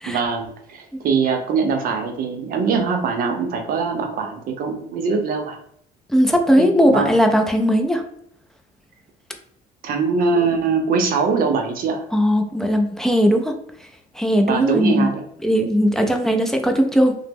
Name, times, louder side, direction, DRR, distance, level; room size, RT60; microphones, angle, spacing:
voice 1, 0.1-5.6 6.6-7.1 9.8-12.0 14.5-15.2, right 5 dB, 60° right, 4 dB, 0.6 m, -22 dB
voice 2, 6.1-8.0 12.1-13.5 14.1-15.1 15.4-17.2, equal, 5° left, 3 dB, 0.4 m, -18 dB
2.9 x 2.0 x 3.4 m, 0.68 s
cardioid pair, 110°, 17 cm